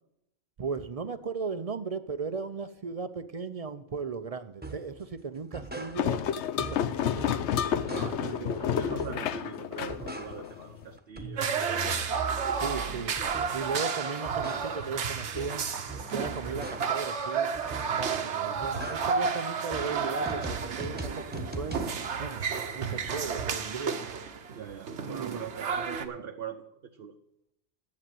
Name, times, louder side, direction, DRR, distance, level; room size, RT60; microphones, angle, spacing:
voice 1, 0.6-6.2 6.6-7.2 8.2-8.7 12.6-13.2 13.5-15.6 16.1-21.9 22.2-22.4 22.7-24.0 25.0-25.4, right 5 dB, 45° right, 11 dB, 0.5 m, -36 dB
sound 1, 4.6-4.9 5.3-6.3 6.6-8.4 8.8-9.4 9.7-10.7 11.0-13.7 14.1-17.1 17.5-18.1 18.4-22.1, right 2 dB, 10° right, 1.0 m, -41 dB
sound 2, 6.0-10.8, left 9 dB, 80° left, 0.9 m, -30 dB
voice 2, 7.8-12.2 24.5-27.2, right 7 dB, 60° right, 5 dB, 0.9 m, -42 dB
sound 3, 11.4-26.1, right 6 dB, 80° right, 1.2 m, -32 dB
10.5 x 7.6 x 7.7 m, 0.82 s
omnidirectional pair, 1.2 m